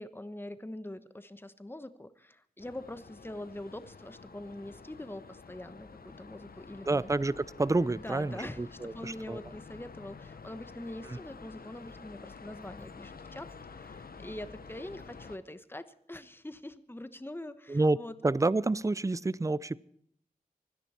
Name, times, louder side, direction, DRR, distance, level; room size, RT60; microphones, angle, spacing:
voice 1, 0.0-7.1 8.0-18.1, left 1 dB, 15° left, 12 dB, 1.2 m, -44 dB
sound 1, 2.6-15.4, left 4 dB, 80° left, 1.0 m, -49 dB
voice 2, 6.9-9.4 11.1-11.2 17.7-18.0 18.2-19.8, right 2 dB, 20° right, 20 dB, 0.5 m, -29 dB
25.0 x 10.0 x 4.4 m, 0.66 s
wide cardioid pair, 50°, 15 cm